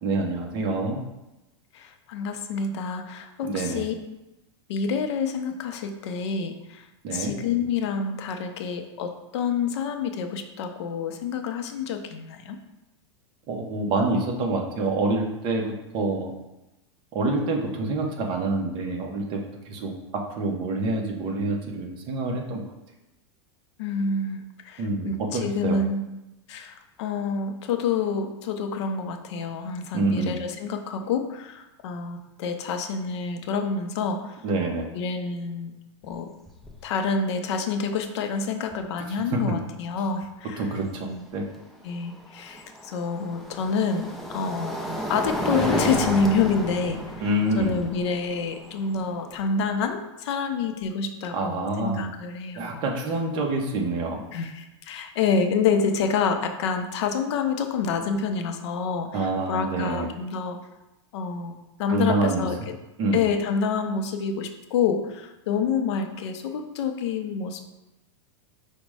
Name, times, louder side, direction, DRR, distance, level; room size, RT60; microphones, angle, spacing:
voice 1, 0.0-1.0 3.4-3.9 7.0-7.3 13.5-16.3 17.1-19.9 20.3-22.6 24.8-25.8 29.9-30.3 34.4-34.9 39.3-39.4 40.6-41.4 47.2-47.7 51.3-52.0 52.6-54.2 59.1-60.1 61.9-62.5 63.0-63.2, right 2 dB, 30° right, 2 dB, 0.7 m, -26 dB
voice 2, 1.7-3.9 4.7-6.9 7.1-12.6 23.8-26.1 26.5-34.4 34.9-35.7 36.0-36.3 36.8-40.6 41.0-41.2 41.8-44.0 44.3-44.8 45.1-47.0 47.6-52.8 54.3-60.6 61.1-61.5 61.8-62.5 63.1-67.7, left 5 dB, 65° left, 6 dB, 0.5 m, -27 dB
sound 1, 36.0-36.2 36.5-36.9 38.7-38.8 41.8-49.9, equal, ahead, 0.4 m, -32 dB
5.0 x 2.1 x 4.7 m, 0.96 s
supercardioid pair, 150°, 16 cm